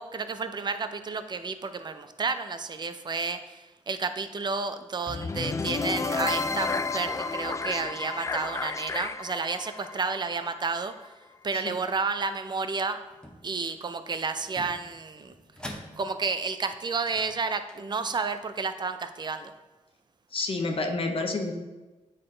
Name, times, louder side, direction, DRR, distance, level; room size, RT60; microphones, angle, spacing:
voice 1, 0.0-11.1 11.4-13.0 13.4-15.3 16.0-19.5, right 4 dB, 35° right, 9 dB, 0.6 m, -31 dB
sound 1, 5.1-11.1, left 4 dB, 25° left, 0.3 m, -31 dB
sound 2, 13.0-13.9 14.4-16.4 16.9-18.3, left 1 dB, 5° left, 1.0 m, -46 dB
voice 2, 20.3-21.5, left 3 dB, 50° left, 4 dB, 0.9 m, -29 dB
8.8 x 3.9 x 3.8 m, 1.2 s
cardioid pair, 80°, 12 cm